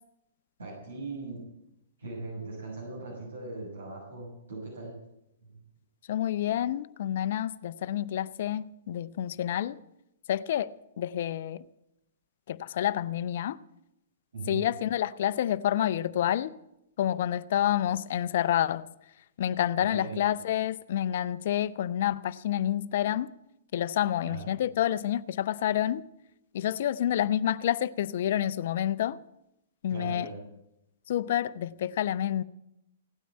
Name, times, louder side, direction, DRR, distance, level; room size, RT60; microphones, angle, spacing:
voice 1, 0.6-1.4 2.0-5.0 5.4-5.5 14.3-14.7 19.8-20.2 24.2-24.5 29.9-30.4, right 3 dB, 80° right, 6.5 m, -39 dB
voice 2, 6.1-9.8 10.3-11.6 12.5-13.6 14.5-16.5 17.0-18.9 19.4-23.3 23.7-26.0 26.5-29.2 29.8-30.3 31.1-32.4, left 11 dB, 60° left, 0.6 m, -28 dB
17.0 x 9.3 x 8.4 m
hypercardioid pair, 115°, 0 cm